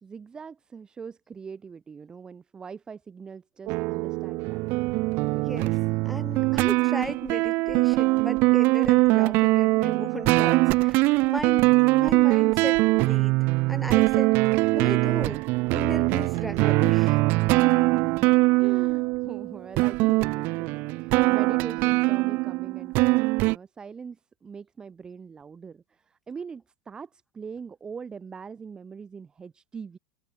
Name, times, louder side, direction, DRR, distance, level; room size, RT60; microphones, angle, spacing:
voice 1, 0.0-4.6 17.5-18.3 18.6-30.0, right 6 dB, 15° right, 3.9 m, -42 dB
sound 1, 3.7-23.6, right 23 dB, 45° right, 0.4 m, -22 dB
voice 2, 5.3-5.8 6.0-15.4 15.7-17.2, equal, ahead, 7.9 m, -36 dB
supercardioid pair, 145°, 5 cm